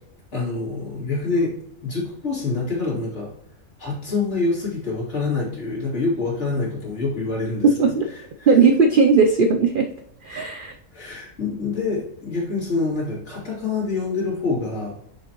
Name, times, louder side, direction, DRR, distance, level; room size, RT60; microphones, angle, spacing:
voice 1, 0.3-1.5 1.8-3.3 3.8-7.7 8.4-8.5 10.3-10.5 10.9-15.0, left 3 dB, 50° left, -4 dB, 2.8 m, -26 dB
voice 2, 7.6-8.1 8.5-9.9 10.2-10.7, right 4 dB, 70° right, 6 dB, 0.5 m, -17 dB
6.4 x 5.1 x 2.9 m, 0.75 s
omnidirectional pair, 1.5 m